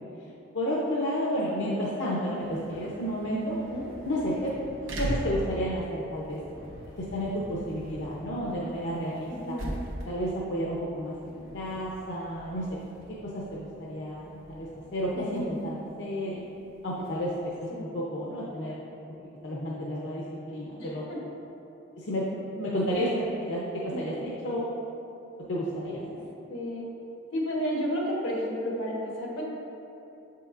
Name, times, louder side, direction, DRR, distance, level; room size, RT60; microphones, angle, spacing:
voice 1, 0.5-3.6 4.0-4.5 4.8-6.4 7.1-9.6 10.0-12.6 13.3-16.4 16.8-17.3 17.6-18.8 19.4-21.1 22.0-22.2 22.5-23.6 24.0-24.7 25.5-26.0, equal, 70° left, -6 dB, 0.7 m, -31 dB
sound 1, 2.2-17.6, right 1 dB, 90° right, 0.9 m, -41 dB
voice 2, 9.3-9.7 15.1-15.5 17.7-17.9 20.8-21.2 23.0-23.2 23.9-24.2 26.5-26.8 27.3-29.4, equal, 90° left, -3 dB, 1.2 m, -32 dB
7.1 x 5.6 x 2.5 m, 2.9 s
head